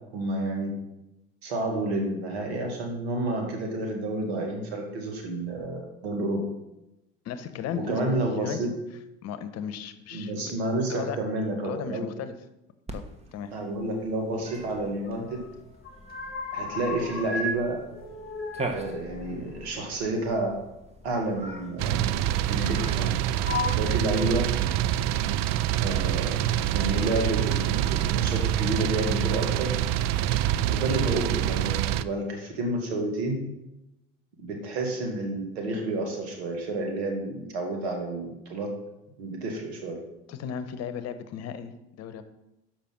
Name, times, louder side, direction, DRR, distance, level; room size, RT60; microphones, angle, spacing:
voice 1, 0.1-0.8 1.4-6.5 7.7-8.8 10.1-12.1 13.5-15.4 16.5-17.8 18.7-20.6 21.0-22.2 22.5-23.1 23.8-24.6 25.8-26.4 26.7-29.8 30.7-33.4 34.4-38.8 39.2-40.0, right 2 dB, 90° right, 2 dB, 1.9 m, -30 dB
voice 2, 7.2-8.7 9.2-10.4 10.9-11.2 11.6-12.3 12.9-13.0 13.3-13.5 40.3-42.2, left 8 dB, 55° left, 11 dB, 1.0 m, -35 dB
Cat, 12.9-26.5, right 2 dB, 20° right, 1.4 m, -44 dB
sound 1, 14.6-15.5 15.7-17.6 17.9-20.4 21.4-21.5 22.5-23.1 23.4-23.7, left 3 dB, 30° left, 1.8 m, -35 dB
sound 2, 21.8-32.0, right 12 dB, 60° right, 0.5 m, -26 dB
6.9 x 5.8 x 5.9 m, 0.92 s
hypercardioid pair, 75°, 31 cm